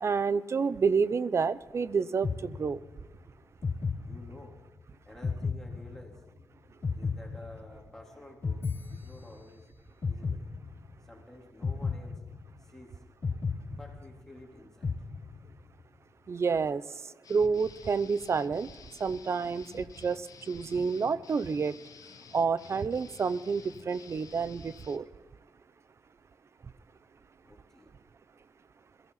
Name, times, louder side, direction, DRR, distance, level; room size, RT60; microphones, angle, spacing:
voice 1, 0.0-2.8 16.3-16.8 17.3-18.7 19.0-20.2 20.5-21.7 22.3-25.0, right 5 dB, 45° right, 16 dB, 0.6 m, -29 dB
sound 1, 2.2-3.1 3.6-4.7 5.2-6.4 6.8-8.0 8.4-9.6 10.0-11.1 11.6-12.8 13.2-14.4 14.8-15.7, left 4 dB, 40° left, 1.0 m, -34 dB
voice 2, 3.2-3.6 4.0-4.6 5.1-6.2 6.9-10.5 11.0-12.2 12.6-13.0 13.7-14.8 27.4-27.9, left 1 dB, 5° left, -1 dB, 3.6 m, -51 dB
sound 2, 17.2-25.0, left 6 dB, 65° left, 1.0 m, -52 dB
22.0 x 15.0 x 4.1 m, 1.3 s
wide cardioid pair, 115°, 6 cm